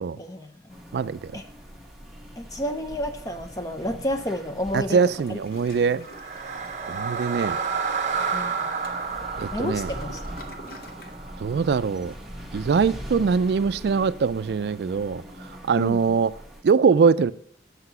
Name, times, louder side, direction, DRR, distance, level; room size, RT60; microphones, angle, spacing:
voice 1, 0.2-0.8 1.3-1.4 2.4-5.0 5.3-5.4 8.3-8.7 9.5-10.5 15.8-16.2, left 1 dB, 20° left, 0.5 m, -31 dB
sound 1, 0.7-16.6, equal, ahead, 1.1 m, -42 dB
voice 2, 0.9-1.3 4.7-6.1 6.9-7.6 9.4-9.9 11.4-12.1 12.5-15.2 15.7-16.3 16.6-17.3, right 5 dB, 65° right, 0.3 m, -22 dB
Toilet flush, 5.1-11.2, left 1 dB, 55° left, 0.9 m, -49 dB
sound 2, 6.0-12.1, right 5 dB, 40° right, 0.7 m, -31 dB
8.0 x 5.7 x 5.5 m
head